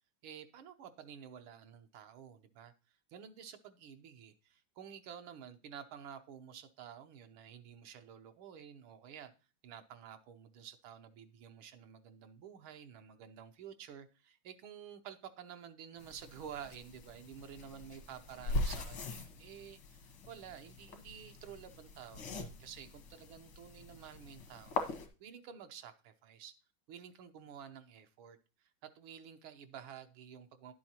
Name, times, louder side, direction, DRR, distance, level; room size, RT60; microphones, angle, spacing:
voice 1, 0.2-9.3 9.6-19.8 20.3-24.8 25.2-26.5 26.9-30.7, right 8 dB, 90° right, 1.7 m, -51 dB
sound 1, 16.0-25.1, left 2 dB, 85° left, 2.2 m, -42 dB
11.0 x 7.6 x 2.9 m
omnidirectional pair, 2.2 m